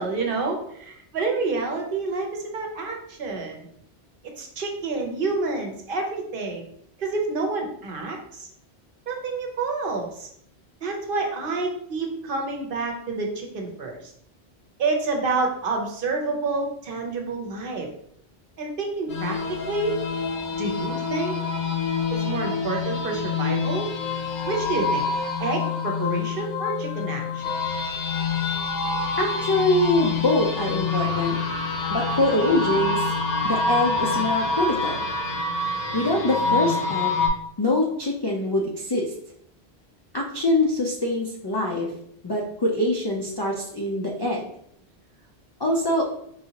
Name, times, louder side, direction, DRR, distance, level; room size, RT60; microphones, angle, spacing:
voice 1, 0.0-3.7 4.4-6.7 7.0-8.5 9.1-10.3 10.8-14.1 14.8-17.9 18.6-19.4 19.7-20.0 20.6-21.4 22.1-23.9 24.5-25.0 25.4-27.5, right 3 dB, 60° right, 2 dB, 0.9 m, -28 dB
sound 1, 19.1-37.3, left 4 dB, 70° left, 1.0 m, -26 dB
voice 2, 29.2-31.4 31.9-33.0 33.4-35.1 35.9-37.2 37.6-39.1 40.1-41.9 42.2-44.5 45.6-46.1, left 1 dB, 40° left, -2 dB, 0.3 m, -24 dB
4.5 x 2.8 x 2.8 m, 0.71 s
omnidirectional pair, 1.1 m